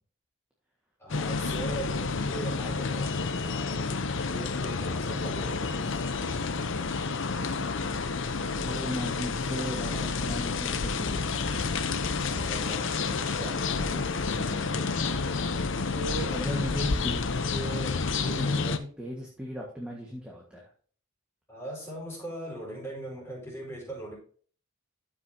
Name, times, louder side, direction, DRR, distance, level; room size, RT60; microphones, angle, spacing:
voice 1, 1.0-3.9 4.2-6.1 12.3-12.5 21.5-24.2, right 1 dB, 10° left, -3 dB, 4.8 m, -40 dB
sound 1, 1.1-18.8, left 4 dB, 60° left, 0.7 m, -30 dB
voice 2, 8.5-20.7, equal, 5° right, -3 dB, 1.5 m, -39 dB
13.0 x 6.2 x 2.8 m, 0.44 s
head